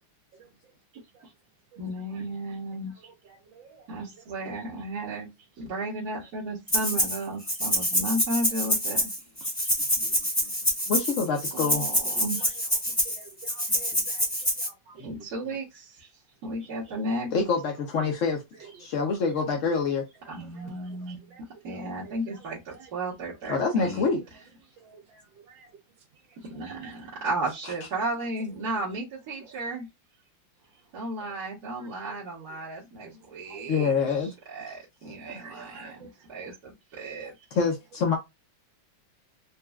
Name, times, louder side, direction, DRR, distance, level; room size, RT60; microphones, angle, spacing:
voice 1, 1.8-2.9 3.9-5.3 5.6-9.0 9.4-9.5 11.5-12.6 15.0-16.1 16.4-17.3 20.3-21.4 21.6-24.1 26.5-29.9 30.9-33.9 34.2-37.3, right 1 dB, 55° right, 1.6 m, -34 dB
voice 2, 3.0-3.9 4.2-4.3 12.1-12.5 12.9-15.0 18.6-18.9 20.4-21.4 21.7-22.9 24.8-25.7 26.3-27.0 29.4-29.5 31.2-31.3 31.8-32.2 32.5-32.6 33.0-33.7 35.1-36.6 37.2-37.3, right 5 dB, 75° right, 1.7 m, -51 dB
Rattle (instrument), 6.7-7.2 7.5-14.7, equal, 10° left, 1.2 m, -26 dB
voice 3, 10.9-11.8 13.7-14.0 17.3-18.4 18.8-20.0 23.5-24.2 33.7-34.3 37.5-38.2, left 5 dB, 65° left, 0.8 m, -26 dB
4.1 x 2.3 x 2.3 m
omnidirectional pair, 2.1 m